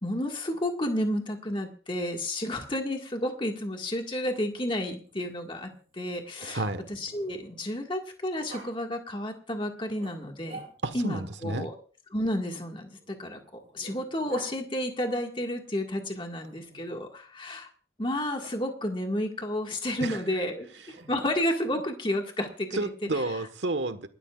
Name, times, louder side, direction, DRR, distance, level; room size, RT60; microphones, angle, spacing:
voice 1, 0.0-6.6 6.9-10.6 10.9-11.7 12.1-17.7 18.0-20.7 21.1-22.9, left 1 dB, 25° left, 3 dB, 1.8 m, -31 dB
Growling, 4.4-7.8 8.5-8.7 10.0-11.1 12.4-14.5 16.4-17.1 18.4-18.6 20.9-21.7, right 2 dB, 35° right, 6.8 m, -49 dB
voice 2, 6.4-6.9 10.8-11.7 20.0-20.2 21.0-21.1 22.7-24.1, right 2 dB, 80° right, 10 dB, 1.4 m, -31 dB
28.0 x 13.0 x 2.4 m, 0.39 s
head